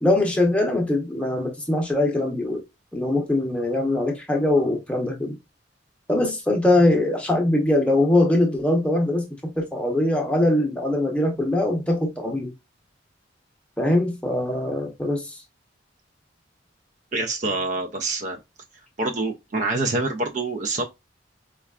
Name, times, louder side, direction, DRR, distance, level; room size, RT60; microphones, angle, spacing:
voice 1, 0.0-2.6 2.9-5.4 6.1-12.5 13.8-15.4, left 1 dB, 5° left, 0.7 m, -22 dB
voice 2, 17.1-18.4 19.0-20.9, right 2 dB, 40° right, 0.4 m, -26 dB
4.4 x 2.3 x 2.2 m
head